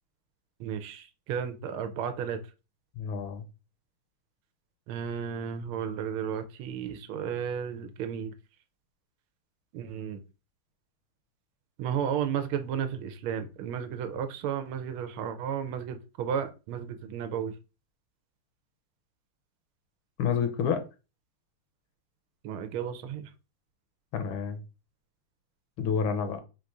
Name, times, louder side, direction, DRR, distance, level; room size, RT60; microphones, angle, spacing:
voice 1, 0.6-2.4 4.9-8.3 9.7-10.2 11.8-17.5 22.4-23.2, right 8 dB, 80° right, 8 dB, 1.4 m, -33 dB
voice 2, 3.0-3.5 20.2-20.8 24.1-24.6 25.8-26.4, left 6 dB, 70° left, 8 dB, 1.5 m, -29 dB
4.2 x 2.5 x 4.6 m, 0.30 s
omnidirectional pair, 2.4 m